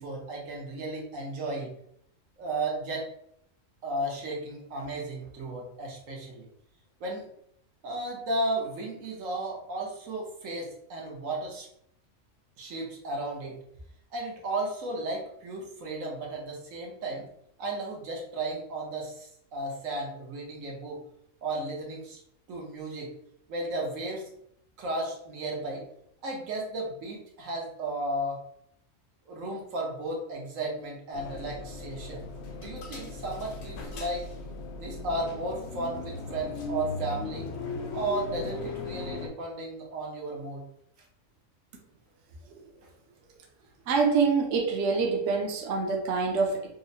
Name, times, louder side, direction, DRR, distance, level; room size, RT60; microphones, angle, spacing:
voice 1, 0.0-1.7 2.4-3.1 3.8-6.5 7.0-7.2 7.8-11.7 12.6-13.6 14.1-17.3 17.6-21.0 21.4-22.2 22.5-23.1 23.5-24.3 24.8-25.8 26.2-28.4 29.3-32.2 32.5-34.2 34.8-37.5 37.9-40.6, right 2 dB, 85° right, -1 dB, 1.3 m, -34 dB
sound 1, 31.1-39.3, left 3 dB, 65° left, 0.8 m, -38 dB
voice 2, 43.9-46.7, right 4 dB, 65° right, 0 dB, 0.9 m, -25 dB
5.4 x 2.0 x 2.7 m, 0.73 s
omnidirectional pair, 1.3 m